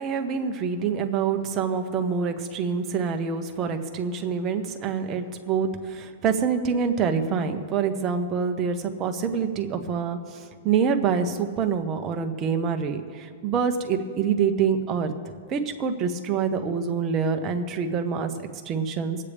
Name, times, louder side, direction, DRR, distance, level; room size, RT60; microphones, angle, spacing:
voice 1, 0.0-19.2, right 6 dB, 25° right, 6 dB, 0.9 m, -26 dB
24.0 x 8.6 x 3.5 m, 2.1 s
hypercardioid pair, 155°, 0 cm